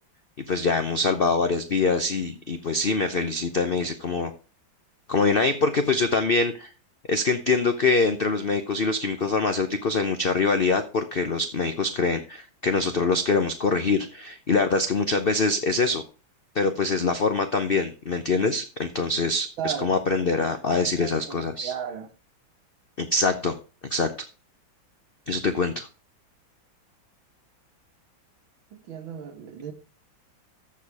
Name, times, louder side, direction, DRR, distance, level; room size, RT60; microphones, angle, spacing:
voice 1, 0.5-4.3 5.1-6.7 7.1-16.0 16.5-21.7 23.0-23.5 23.9-24.1 25.3-25.9, left 3 dB, 60° left, 0.5 m, -24 dB
voice 2, 19.6-19.9 20.4-22.1 28.7-29.7, right 8 dB, 75° right, 2.1 m, -35 dB
14.0 x 4.8 x 4.7 m
omnidirectional pair, 2.2 m